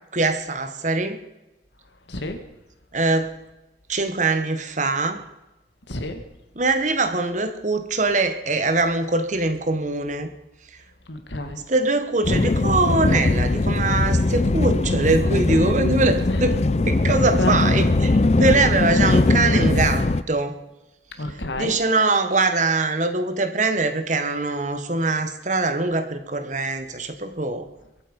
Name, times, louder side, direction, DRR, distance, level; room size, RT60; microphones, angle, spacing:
voice 1, 0.1-1.2 2.9-3.3 3.9-5.2 6.5-10.3 11.7-16.6 16.9-20.6 21.3-27.7, right 3 dB, 40° right, 8 dB, 1.4 m, -23 dB
voice 2, 2.1-2.4 5.9-6.2 11.1-11.6 16.3-16.4 17.4-17.9 21.2-21.7, left 1 dB, 70° left, 7 dB, 2.1 m, -28 dB
sound 1, 12.2-20.2, left 2 dB, 35° left, 0.5 m, -20 dB
22.5 x 9.1 x 5.5 m, 0.99 s
head